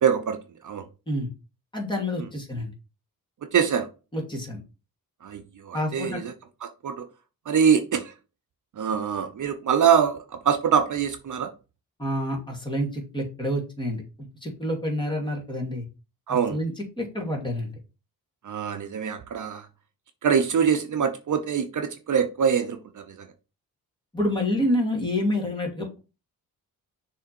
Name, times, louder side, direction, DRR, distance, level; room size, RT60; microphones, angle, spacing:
voice 1, 0.0-0.8 3.5-3.9 5.2-6.3 6.6-7.1 7.5-8.1 8.8-11.5 16.3-16.6 18.4-19.7 20.2-23.3, right 7 dB, 55° right, 0.8 m, -24 dB
voice 2, 1.7-2.7 4.1-4.6 5.7-6.2 12.0-14.0 14.4-15.8 16.3-16.7 17.0-17.7 24.1-26.0, left 1 dB, 15° left, 2.5 m, -28 dB
6.4 x 3.6 x 4.4 m
cardioid pair, 105°, 36 cm